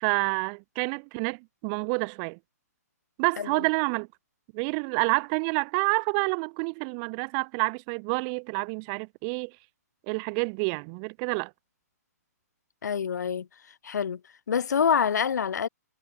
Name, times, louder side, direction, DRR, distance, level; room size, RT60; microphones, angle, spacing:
voice 1, 0.0-2.4 3.2-4.1 4.5-9.5 10.1-11.5, right 40 dB or more, 20° right, 0.3 m, -28 dB
voice 2, 12.8-13.5 13.8-14.2 14.5-15.7, left 7 dB, 90° left, 0.5 m, -26 dB
hypercardioid pair, 160°, 9 cm